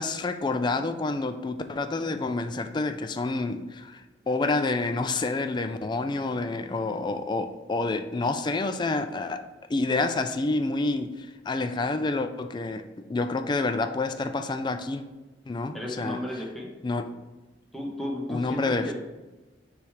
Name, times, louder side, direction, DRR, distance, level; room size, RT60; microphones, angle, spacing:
voice 1, 0.0-9.4 9.7-15.0 15.5-16.2 16.8-17.1 18.3-18.9, left 3 dB, 25° left, 8 dB, 0.3 m, -28 dB
voice 2, 15.7-16.7 17.7-18.9, left 1 dB, ahead, -2 dB, 0.9 m, -34 dB
6.7 x 3.3 x 4.8 m, 1.1 s
head